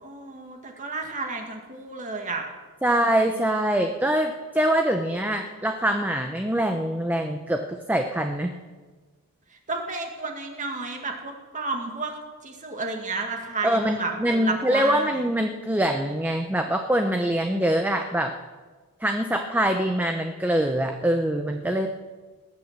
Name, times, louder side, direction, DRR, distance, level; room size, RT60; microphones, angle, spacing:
voice 1, 0.0-2.5 2.9-3.2 9.7-12.1 12.4-15.2, right 3 dB, 35° right, 3 dB, 1.9 m, -32 dB
voice 2, 2.8-8.5 13.6-18.3 19.0-21.9, right 1 dB, 10° right, 5 dB, 0.7 m, -24 dB
19.0 x 9.1 x 7.4 m, 1.4 s
head